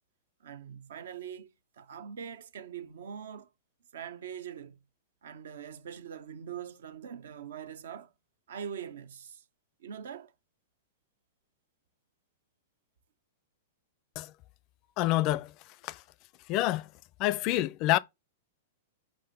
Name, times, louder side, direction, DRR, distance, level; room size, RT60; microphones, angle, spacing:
voice 1, 0.4-1.5 1.8-3.5 3.9-4.8 5.2-8.1 8.5-9.4 9.8-10.3, right 8 dB, 70° right, 0.6 m, -42 dB
voice 2, 15.0-15.5 15.8-16.0 16.5-16.9 17.2-18.0, left 16 dB, 45° left, 0.4 m, -27 dB
5.1 x 3.8 x 5.5 m
hypercardioid pair, 105°, 0 cm